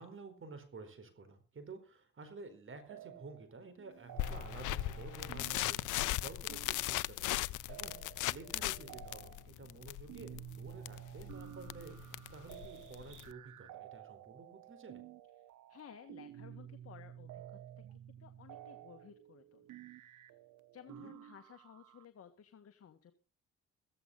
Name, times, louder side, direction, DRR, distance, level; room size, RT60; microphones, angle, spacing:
voice 1, 0.0-15.0 20.9-21.1, right 4 dB, 45° right, 10 dB, 4.5 m, -52 dB
sound 1, 2.9-3.5 3.8-22.1, right 11 dB, 80° right, 1.3 m, -52 dB
sound 2, 4.2-13.3, left 16 dB, 85° left, 0.7 m, -38 dB
voice 2, 15.4-20.4 20.7-23.1, left 9 dB, 50° left, 7 dB, 1.8 m, -57 dB
15.5 x 14.5 x 4.1 m, 0.35 s
cardioid pair, 90°, 30 cm